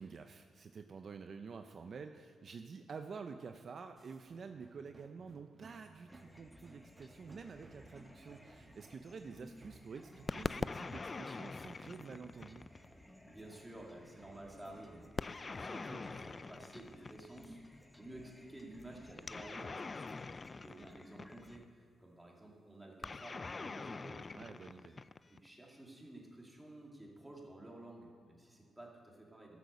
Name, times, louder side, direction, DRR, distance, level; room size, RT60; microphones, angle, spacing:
voice 1, 0.0-12.7 24.3-25.0, right 5 dB, 55° right, 7 dB, 0.5 m, -49 dB
sound 1, 4.0-10.4, right 3 dB, 35° right, 1.3 m, -62 dB
sound 2, 6.1-21.6, equal, 10° left, 0.8 m, -59 dB
sound 3, 10.3-12.9 15.2-17.5 19.2-21.6 23.0-25.5, left 4 dB, 35° left, 0.3 m, -43 dB
voice 2, 13.2-20.1 20.4-24.5 25.3-29.6, right 1 dB, 10° right, -1 dB, 2.6 m, -53 dB
13.0 x 6.3 x 6.7 m, 2.2 s
cardioid pair, 80°, 0 cm